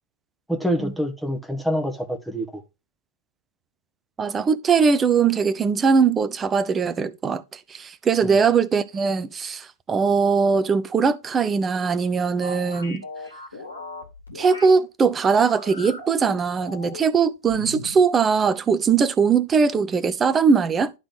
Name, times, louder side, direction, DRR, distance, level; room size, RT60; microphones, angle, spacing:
voice 1, 0.5-2.6 8.2-8.4, equal, ahead, 1.3 m, -26 dB
voice 2, 4.2-13.0 14.3-20.9, right 5 dB, 20° right, 0.6 m, -20 dB
sound 1, 12.4-14.8 15.3-17.1 17.5-18.0, left 2 dB, 80° left, 2.5 m, -38 dB
11.5 x 3.9 x 3.8 m
figure-of-eight pair, 90°, 0 cm